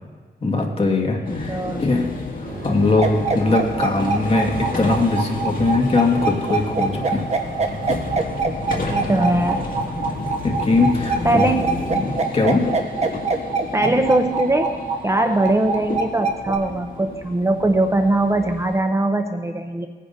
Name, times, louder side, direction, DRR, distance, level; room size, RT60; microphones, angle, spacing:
voice 1, 0.4-2.1 2.4-7.2 8.8-9.1 10.4-11.5 11.9-12.1 12.3-12.7, left 3 dB, 35° left, 0 dB, 1.9 m, -21 dB
sound 1, 1.2-18.8, left 3 dB, 55° left, 2.0 m, -31 dB
voice 2, 1.5-1.8 8.8-9.7 11.2-11.9 13.7-14.8 15.0-19.9, right 2 dB, 15° right, 6 dB, 0.6 m, -21 dB
sound 2, 2.5-8.2, right 5 dB, 75° right, 1.7 m, -38 dB
sound 3, 3.0-16.6, right 4 dB, 40° right, 1.2 m, -24 dB
19.0 x 9.9 x 2.7 m, 1.5 s
cardioid pair, 90°, 17 cm